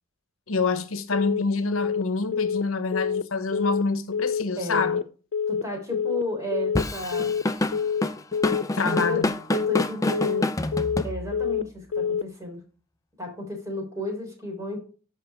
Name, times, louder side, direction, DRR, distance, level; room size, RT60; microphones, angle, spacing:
voice 1, 0.5-5.0 8.7-9.3, left 3 dB, 80° left, 1.0 m, -27 dB
Telephone, 1.1-1.4 1.7-2.0 2.3-2.6 2.9-3.2 3.5-3.8 4.1-4.4 4.7-5.0 5.3-5.6 5.9-6.2 6.5-6.8 7.1-7.4 7.7-8.0 8.3-8.6 8.9-9.2 9.5-9.8 10.1-10.4 10.7-11.0 11.3-11.6 11.9-12.2, left 7 dB, 60° left, 0.4 m, -26 dB
voice 2, 4.6-4.9 5.5-7.4 8.9-10.5 11.0-12.6 13.2-14.8, left 1 dB, 15° right, 3.5 m, -33 dB
Drum kit / Drum, 6.7-11.6, left 1 dB, 15° left, 0.6 m, -27 dB
13.5 x 5.7 x 3.5 m
head